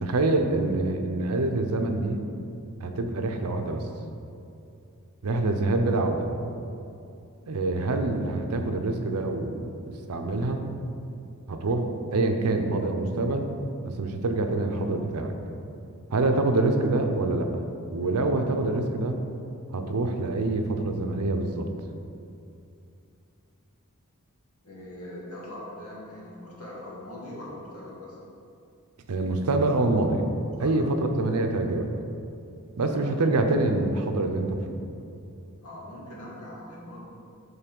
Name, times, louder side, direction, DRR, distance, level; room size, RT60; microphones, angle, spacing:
voice 1, 0.0-2.2 2.8-3.8 5.2-6.3 7.5-9.7 10.1-10.6 11.5-13.5 13.8-15.3 16.1-17.5 17.9-19.2 19.7-21.7 29.1-30.2 30.6-31.9 32.8-34.6, right 2 dB, 85° right, 5 dB, 0.6 m, -25 dB
voice 2, 24.6-28.2 30.6-30.9 33.0-33.1 35.6-37.0, left 1 dB, 85° left, -4 dB, 1.5 m, -41 dB
5.7 x 3.8 x 5.3 m, 2.6 s
head